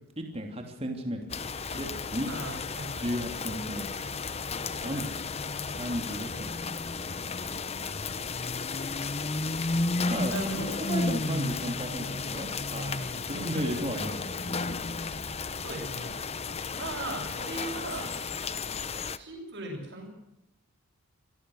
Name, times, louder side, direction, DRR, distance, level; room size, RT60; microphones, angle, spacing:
voice 1, 0.2-1.4 1.7-2.3 3.0-4.0 4.8-5.0 5.7-6.8 10.1-14.8, equal, 25° right, 3 dB, 3.0 m, -35 dB
sound 1, 1.3-19.2, left 3 dB, 30° left, 0.8 m, -33 dB
voice 2, 2.3-2.9 4.9-5.1 10.3-10.7 13.3-14.0 15.6-16.1 16.7-18.1 19.1-20.1, right 2 dB, 50° right, -7 dB, 6.7 m, -38 dB
26.0 x 17.0 x 6.5 m, 0.92 s
head